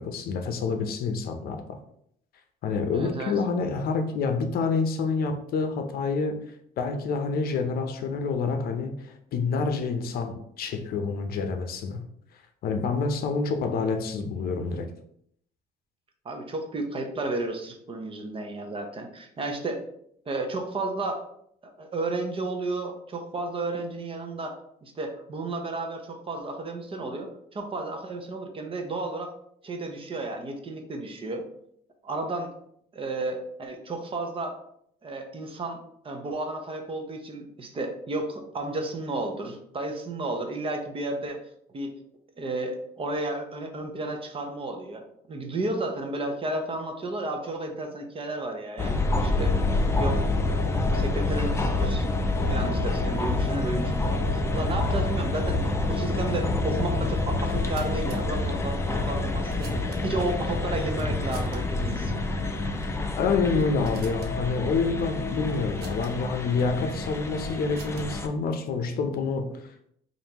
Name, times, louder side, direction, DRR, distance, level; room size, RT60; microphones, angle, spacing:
voice 1, 0.0-1.6 2.6-6.4 6.8-12.1 12.6-14.9 63.2-69.9, left 4 dB, 65° left, 6 dB, 0.6 m, -28 dB
voice 2, 2.9-3.3 16.2-19.8 20.3-21.2 21.6-29.3 29.6-31.4 32.0-32.5 32.9-34.5 35.0-35.8 36.0-41.4 41.7-41.9 42.4-45.0 45.3-49.5 50.0-50.2 50.7-52.1 52.5-62.1, right 2 dB, 30° right, 4 dB, 0.8 m, -32 dB
sound 1, 48.8-68.3, left 2 dB, 15° left, 0.5 m, -27 dB
sound 2, 57.4-58.2 59.1-60.3 60.9-61.6 61.9-62.0 62.7-63.0 63.4-64.3 65.5-66.1 67.1-68.3, right 5 dB, 70° right, 0.8 m, -50 dB
5.1 x 2.6 x 2.9 m, 0.69 s
cardioid pair, 110°, 17 cm